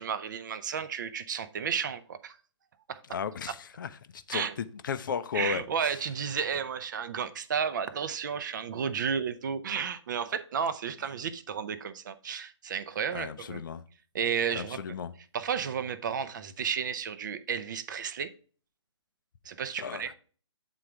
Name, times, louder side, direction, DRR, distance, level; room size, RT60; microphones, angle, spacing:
voice 1, 0.0-2.4 2.9-3.0 3.5-3.6 4.3-4.5 5.3-13.6 14.1-14.8 15.3-18.3 19.4-20.1, right 7 dB, 40° right, 0.6 m, -32 dB
voice 2, 3.1-5.9 13.1-13.8 14.6-15.1 19.8-20.0, left 7 dB, 45° left, 0.5 m, -35 dB
8.3 x 3.9 x 4.5 m
figure-of-eight pair, 135°, 16 cm